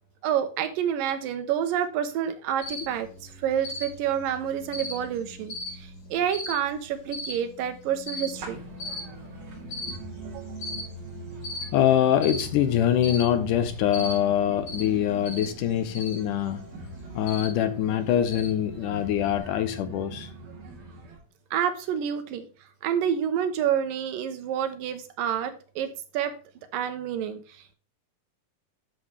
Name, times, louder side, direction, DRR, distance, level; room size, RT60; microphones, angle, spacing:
voice 1, 0.2-8.6 10.3-10.4 21.5-22.5 22.8-26.3 26.7-27.8, right 9 dB, 80° right, 2.5 m, -28 dB
Cricket, 2.6-19.4, left 2 dB, 45° left, 3.9 m, -39 dB
sound 1, 8.3-21.2, right 3 dB, 50° right, 4.0 m, -42 dB
voice 2, 11.7-16.6 17.2-20.3, left 10 dB, 75° left, 2.1 m, -24 dB
11.5 x 6.5 x 3.3 m
omnidirectional pair, 4.0 m